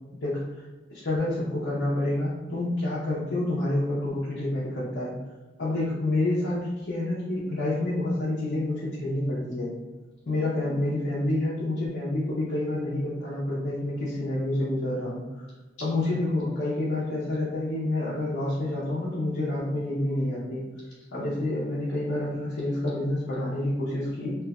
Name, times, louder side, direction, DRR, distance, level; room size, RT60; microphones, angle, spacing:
voice 1, 0.9-5.1 5.6-9.7 10.2-15.2 15.8-20.6 21.1-24.4, left 1 dB, 85° left, -10 dB, 0.9 m, -28 dB
3.3 x 3.1 x 2.4 m, 1.2 s
head